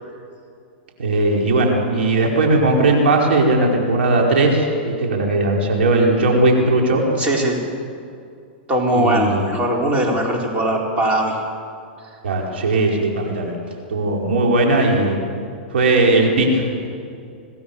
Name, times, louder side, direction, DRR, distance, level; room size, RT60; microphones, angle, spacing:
voice 1, 1.0-7.0 8.9-9.5 12.2-13.5 13.9-15.1 15.7-16.9, right 2 dB, 85° right, 0 dB, 5.1 m, -18 dB
voice 2, 7.2-7.6 8.7-11.4, right 1 dB, 20° right, -1 dB, 4.1 m, -20 dB
26.5 x 18.5 x 7.2 m, 2.4 s
hypercardioid pair, 135°, 6 cm